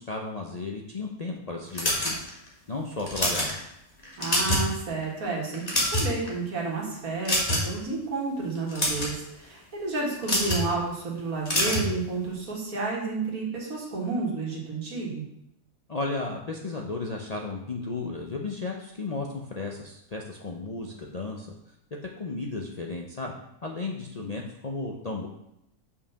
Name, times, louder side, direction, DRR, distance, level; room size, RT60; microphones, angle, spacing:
voice 1, 0.0-2.2 2.7-3.6 15.9-21.5 22.2-25.3, left 3 dB, 50° left, -1 dB, 0.4 m, -34 dB
sound 1, 1.8-2.5 3.0-3.5 4.0-4.7 5.0-5.2 5.5-6.3 7.3-7.8 8.6-9.1 10.2-10.7 11.5-11.9, left 1 dB, 25° left, 1.6 m, -25 dB
voice 2, 4.2-15.2, right 3 dB, 70° right, -4 dB, 2.1 m, -31 dB
5.7 x 4.8 x 5.6 m, 0.80 s
omnidirectional pair, 1.6 m